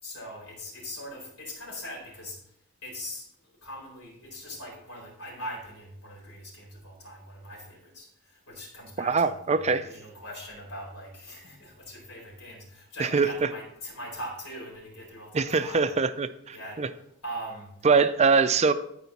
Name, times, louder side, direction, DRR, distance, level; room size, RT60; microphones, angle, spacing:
voice 1, 0.0-15.9 16.5-17.7, equal, 75° left, -2 dB, 4.2 m, -41 dB
voice 2, 9.0-9.8 13.0-13.3 15.3-16.9 17.8-18.7, right 4 dB, 30° right, 12 dB, 0.4 m, -23 dB
13.5 x 5.0 x 4.1 m, 0.76 s
head